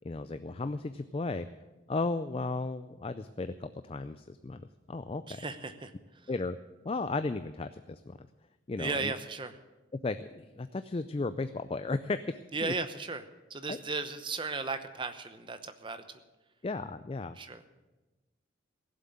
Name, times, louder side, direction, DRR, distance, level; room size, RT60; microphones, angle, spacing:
voice 1, 0.0-1.5 1.9-5.4 6.3-6.6 6.8-8.2 8.7-9.1 10.0-12.7 13.7-13.8 16.6-17.4, left 3 dB, 30° left, 11 dB, 0.4 m, -35 dB
voice 2, 5.3-5.9 8.8-9.6 12.5-16.2 17.3-17.6, right 3 dB, 25° right, 9 dB, 0.8 m, -36 dB
17.0 x 7.6 x 8.5 m, 1.1 s
head